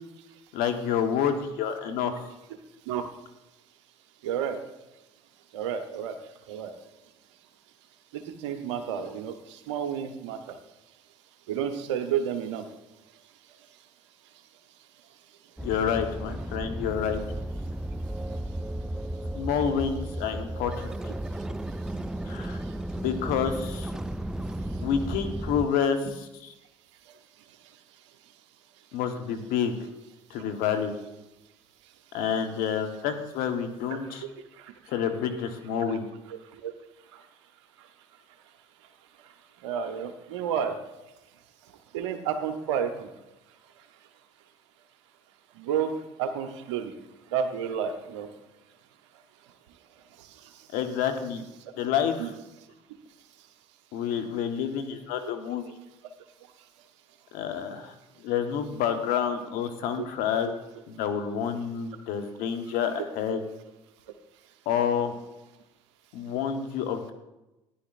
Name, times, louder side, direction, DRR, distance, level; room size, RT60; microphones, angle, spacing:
voice 1, 0.5-2.3 15.6-17.2 19.3-20.9 22.2-22.6 23.0-23.9 24.8-26.5 28.9-29.8 30.3-30.9 32.1-34.2 34.9-36.1 50.7-51.4 51.8-52.3 53.9-55.7 57.3-57.9 58.2-60.5 60.9-63.5 64.7-65.1 66.1-67.1, left 8 dB, 70° left, 7 dB, 1.2 m, -28 dB
voice 2, 4.2-4.6 5.5-6.1 6.5-6.7 8.1-10.4 11.5-12.6 33.9-34.2 35.8-36.0 36.3-36.7 39.6-40.8 41.9-43.1 45.6-45.9 46.2-46.9 47.3-48.3 52.2-52.3, right 8 dB, 80° right, 7 dB, 0.9 m, -31 dB
sound 1, 15.6-25.7, right 1 dB, 5° right, 0.3 m, -34 dB
14.5 x 10.5 x 2.5 m, 1.0 s
hypercardioid pair, 65°, 15 cm